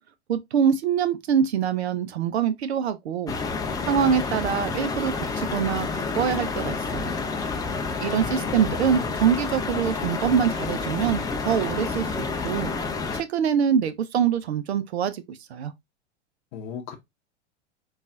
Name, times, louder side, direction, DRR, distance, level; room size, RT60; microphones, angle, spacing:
voice 1, 0.3-3.3 3.8-7.2 8.0-12.7 13.1-15.7, right 8 dB, 70° right, 0.6 m, -24 dB
sound 1, 3.3-13.2, left 4 dB, 10° left, 0.4 m, -29 dB
voice 2, 8.0-9.2 16.5-16.9, left 7 dB, 45° left, 0.7 m, -37 dB
5.3 x 2.3 x 2.4 m
figure-of-eight pair, 90°, 34 cm